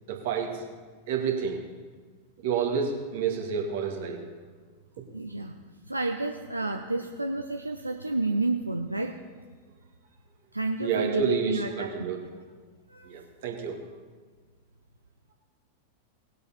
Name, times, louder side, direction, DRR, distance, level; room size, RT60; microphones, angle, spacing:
voice 1, 0.1-0.6 1.1-1.6 2.4-4.2 10.8-12.2 13.0-13.8, right 6 dB, 55° right, 1 dB, 2.1 m, -29 dB
voice 2, 5.1-5.5 5.9-9.2 10.5-11.9 12.9-13.1, right 2 dB, 85° right, 4 dB, 0.5 m, -30 dB
19.0 x 8.0 x 4.3 m, 1.5 s
figure-of-eight pair, 90°, 0 cm